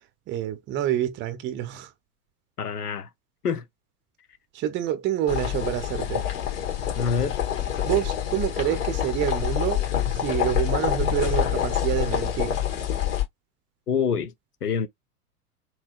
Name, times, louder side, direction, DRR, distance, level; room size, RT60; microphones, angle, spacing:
voice 1, 0.3-1.9 4.5-6.3 7.8-9.8 10.1-12.6, right 11 dB, 25° right, 0.7 m, -27 dB
voice 2, 2.6-3.1 3.4-3.6 7.0-7.4 13.9-14.3 14.6-14.9, left 6 dB, 80° left, 0.7 m, -26 dB
sound 1, 5.3-13.2, left 10 dB, 55° left, 1.8 m, -26 dB
3.6 x 2.9 x 2.3 m
figure-of-eight pair, 85°, 45 cm